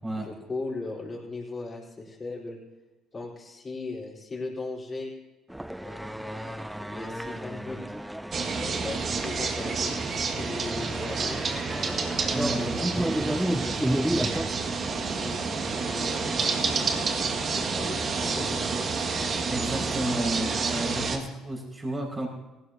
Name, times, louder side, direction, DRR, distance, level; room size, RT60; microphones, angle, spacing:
voice 1, 0.1-2.6 3.1-5.1 5.8-8.0 8.6-11.4 12.1-14.5 15.1-16.4 17.2-18.7, left 3 dB, 30° left, -4 dB, 4.2 m, -39 dB
sound 1, 5.5-14.5, right 1 dB, 5° right, 0.4 m, -32 dB
sound 2, 8.3-21.2, right 4 dB, 45° right, 2.0 m, -29 dB
voice 2, 12.3-12.7 19.5-22.3, right 1 dB, 25° right, -1 dB, 5.9 m, -31 dB
18.0 x 16.0 x 2.9 m, 1.1 s
supercardioid pair, 80°, 0 cm